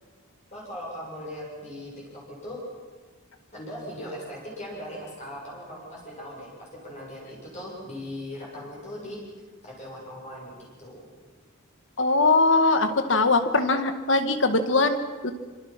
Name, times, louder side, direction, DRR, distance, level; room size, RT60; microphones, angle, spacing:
voice 1, 0.5-2.6 3.5-9.2 9.6-11.1, left 1 dB, 35° left, -4 dB, 7.1 m, -39 dB
voice 2, 12.0-15.3, left 3 dB, 65° left, 8 dB, 1.9 m, -21 dB
26.0 x 26.0 x 6.1 m, 1.4 s
head